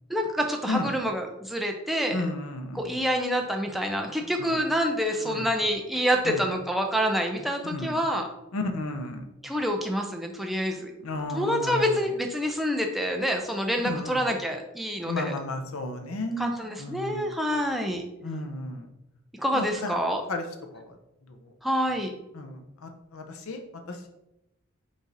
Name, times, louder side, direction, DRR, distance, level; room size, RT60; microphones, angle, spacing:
voice 1, 0.1-2.2 2.7-8.3 9.4-10.9 11.3-15.3 16.4-18.0 19.4-20.2 21.6-22.1, equal, ahead, 2 dB, 0.4 m, -27 dB
voice 2, 2.1-3.0 4.4-4.6 5.2-5.5 6.2-6.4 7.7-7.9 8.5-9.2 11.0-12.1 13.8-14.2 15.0-17.3 18.2-18.9 19.5-20.0 20.3-20.4 20.7-21.0 21.3-21.5 22.3-23.6 23.9-24.1, left 2 dB, 90° left, 5 dB, 0.7 m, -33 dB
4.8 x 2.7 x 4.0 m, 0.92 s
head